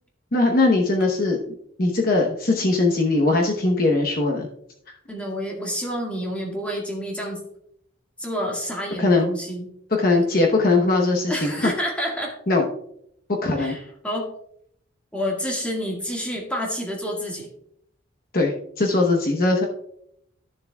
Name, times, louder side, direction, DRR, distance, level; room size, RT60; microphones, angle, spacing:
voice 1, 0.3-1.4 1.8-4.5 9.0-9.3 9.9-11.7 12.5-12.6 13.4-13.8 18.3-19.7, left 2 dB, 45° left, 1 dB, 1.0 m, -20 dB
voice 2, 5.1-7.4 8.2-9.7 11.3-12.4 13.6-14.3 15.1-17.5, equal, 5° left, -2 dB, 1.8 m, -29 dB
13.0 x 7.0 x 2.3 m, 0.71 s
head